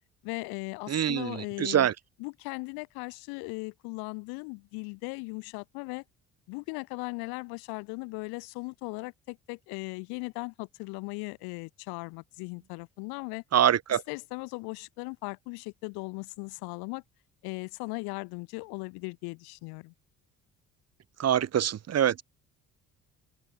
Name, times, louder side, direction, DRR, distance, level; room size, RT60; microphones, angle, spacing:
voice 1, 0.2-1.9 2.2-6.0 6.5-13.4 14.1-17.0 17.4-19.9, left 30 dB, 65° left, 5.9 m, -38 dB
voice 2, 0.9-1.9 13.5-14.0 21.2-22.2, right 10 dB, 40° right, 1.6 m, -25 dB
open air
figure-of-eight pair, 55°, 41 cm